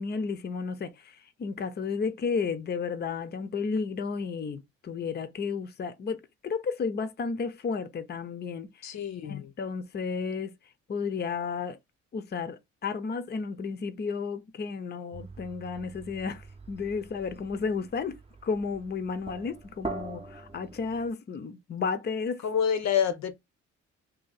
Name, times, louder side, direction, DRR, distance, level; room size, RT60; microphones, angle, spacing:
voice 1, 0.0-8.9 9.2-10.5 10.9-11.8 12.1-18.2 18.4-22.4, left 5 dB, 35° left, 0.6 m, -33 dB
voice 2, 8.8-9.5 22.4-23.4, left 8 dB, 65° left, 0.7 m, -28 dB
sound 1, 15.1-21.1, right 3 dB, 20° right, 0.7 m, -43 dB
2.8 x 2.7 x 3.9 m
cardioid pair, 90°, 30 cm